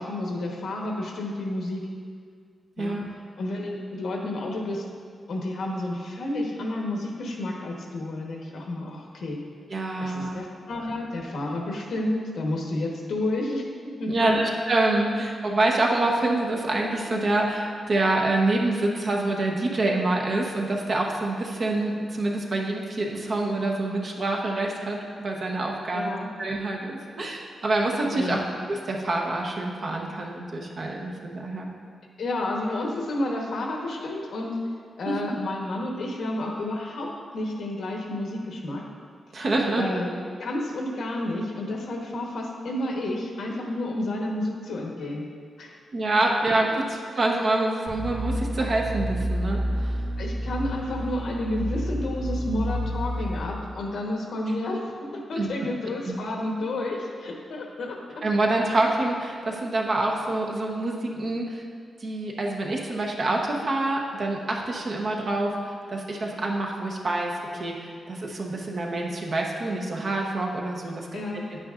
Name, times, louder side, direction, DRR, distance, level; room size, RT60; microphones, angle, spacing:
voice 1, 0.0-1.9 2.8-3.0 3.4-4.8 5.3-9.4 10.0-13.7 14.0-14.4 25.9-26.3 28.1-28.4 32.2-34.6 35.0-38.8 39.7-40.1 40.4-45.3 45.6-45.8 50.2-54.8 55.1-58.2 71.1-71.5, left 1 dB, 65° left, 0 dB, 1.2 m, -30 dB
voice 2, 9.7-10.4 14.1-28.4 28.7-31.7 35.1-35.2 39.3-39.8 45.9-50.0 55.4-55.5 56.0-56.1 58.2-61.6 62.0-71.1 71.5-71.6, right 2 dB, 45° right, -1 dB, 1.0 m, -26 dB
sound 1, 47.9-53.4, equal, 70° right, 1.6 m, -29 dB
9.9 x 9.0 x 2.5 m, 2.1 s
wide cardioid pair, 155°, 0 cm